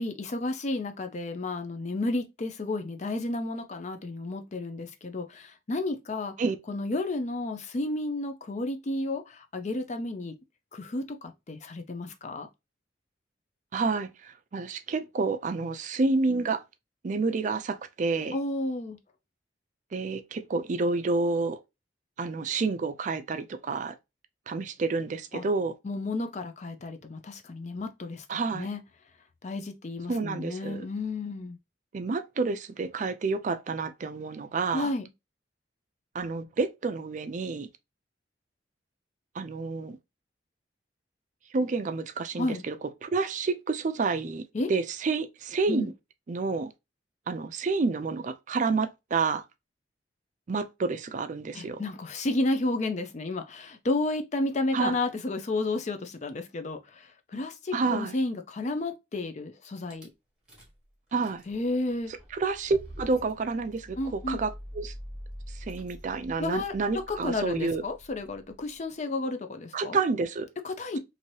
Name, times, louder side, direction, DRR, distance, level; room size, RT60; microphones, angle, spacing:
voice 1, 0.0-6.3 6.7-10.3 10.7-12.5 18.3-19.0 25.3-25.4 25.8-28.2 28.5-28.8 29.4-31.6 34.7-35.0 42.4-42.6 44.5-44.7 45.7-45.9 51.5-57.0 57.3-60.1 61.5-62.1 64.0-64.4 66.4-70.0 70.6-71.0, left 2 dB, 40° left, 0.5 m, -32 dB
voice 2, 13.7-16.6 17.0-18.4 19.9-21.6 22.2-24.0 24.5-25.7 28.3-28.7 30.1-30.8 31.9-34.9 36.1-37.7 39.4-40.0 41.5-42.8 43.0-44.4 44.7-45.9 46.3-46.7 47.3-49.4 50.5-51.8 54.7-55.0 57.7-58.1 61.1-61.4 62.3-64.9 65.6-67.8 69.7-70.5, right 4 dB, 40° right, 0.4 m, -29 dB
Rattle / Car / Engine starting, 59.9-60.1 60.5-60.8 61.1-68.8, equal, 5° right, 1.1 m, -46 dB
2.8 x 2.7 x 3.0 m
head